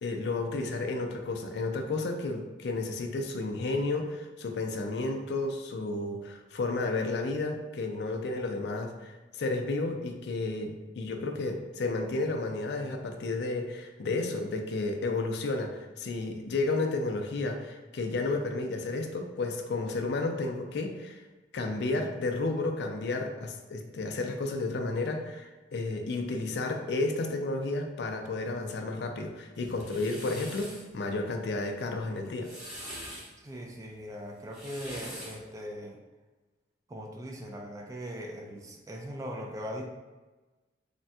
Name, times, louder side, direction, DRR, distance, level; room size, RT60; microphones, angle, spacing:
voice 1, 0.0-15.7 16.0-21.2 21.5-32.5, left 2 dB, 65° left, 4 dB, 0.4 m, -32 dB
sound 1, 29.5-30.9 32.2-33.3 34.4-35.5, equal, 40° right, 1.3 m, -43 dB
voice 2, 33.4-36.0 36.9-39.8, equal, 20° right, 1 dB, 0.3 m, -40 dB
3.3 x 2.1 x 2.7 m, 1.2 s
head